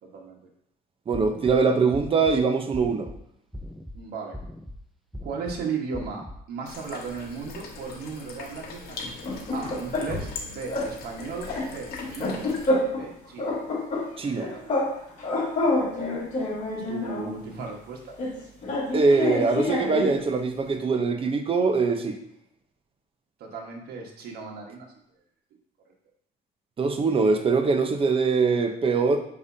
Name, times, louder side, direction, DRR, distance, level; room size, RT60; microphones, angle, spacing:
voice 1, 0.0-0.4 3.9-4.4 5.2-12.5 12.8-13.5 14.4-14.8 16.7-18.1 23.4-24.9, right 5 dB, 70° right, 0 dB, 1.6 m, -36 dB
sound 1, 1.1-1.6 1.9-2.4 2.7-3.2 3.5-4.0 4.3-4.8 5.1-5.6 5.9-6.4, left 1 dB, ahead, 0.4 m, -39 dB
voice 2, 1.1-3.1 14.2-14.5 18.9-22.1 26.8-29.2, right 4 dB, 35° right, 5 dB, 0.8 m, -22 dB
sound 2, 6.6-12.7, left 4 dB, 65° left, 1.2 m, -40 dB
sound 3, 9.0-10.4 10.7-10.9 11.2-13.1 13.4-14.9 15.2-17.4 18.2-20.2, left 2 dB, 45° left, 2.2 m, -28 dB
6.8 x 5.1 x 2.8 m, 0.73 s
cardioid pair, 110°, 17 cm